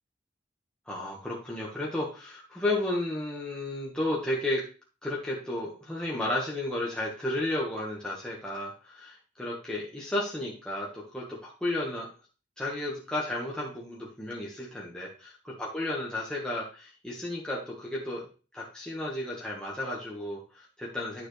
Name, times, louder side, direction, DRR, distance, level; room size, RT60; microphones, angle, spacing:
voice 1, 0.9-4.6 5.0-12.1 12.6-18.2 18.5-21.3, left 1 dB, 5° left, -5 dB, 1.6 m, -33 dB
9.5 x 7.2 x 3.4 m, 0.35 s
head